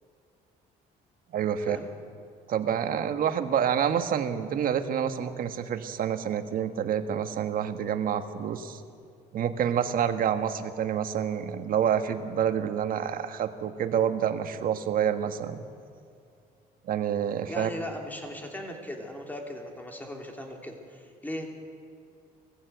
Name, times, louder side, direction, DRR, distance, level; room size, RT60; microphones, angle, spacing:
voice 1, 1.3-1.8 2.5-8.8 9.3-15.6 16.9-17.7, right 8 dB, 55° right, 8 dB, 1.5 m, -28 dB
voice 2, 17.5-21.5, left 1 dB, 10° left, 2 dB, 3.1 m, -38 dB
21.5 x 15.0 x 8.0 m, 2.4 s
cardioid pair, 110°, 17 cm